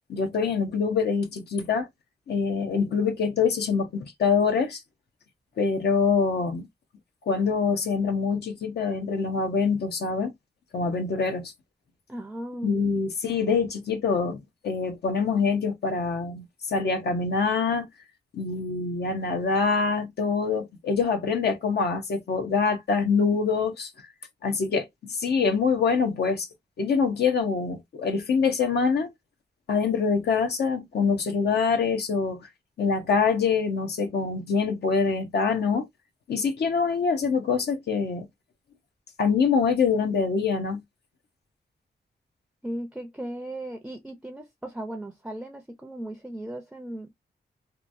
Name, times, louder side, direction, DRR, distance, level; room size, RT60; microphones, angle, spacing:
voice 1, 0.1-1.9 2.3-4.8 5.6-6.7 7.3-10.3 10.7-11.5 12.6-17.9 18.3-23.9 24.4-24.9 25.2-26.5 26.8-29.1 29.7-32.4 32.8-35.9 36.3-38.3 39.2-40.8, left 5 dB, 75° left, 0.8 m, -25 dB
voice 2, 12.1-12.8 42.6-47.1, right 1 dB, 5° right, 0.5 m, -36 dB
2.9 x 2.3 x 2.6 m
cardioid pair, 95°, 17 cm